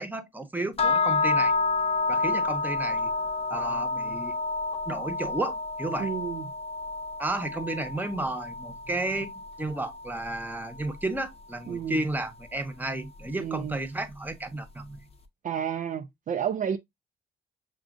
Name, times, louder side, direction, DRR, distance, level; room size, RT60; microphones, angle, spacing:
voice 1, 0.0-1.5 2.1-3.1 3.5-4.4 4.9-6.1 7.2-15.0, right 2 dB, 10° right, 0.8 m, -32 dB
sound 1, 0.8-10.9, left 3 dB, 30° left, 0.7 m, -29 dB
voice 2, 6.0-6.4 11.7-12.0 13.4-13.8 15.4-16.8, right 8 dB, 40° right, 0.4 m, -31 dB
6.0 x 2.4 x 2.4 m
cardioid pair, 90°, 20 cm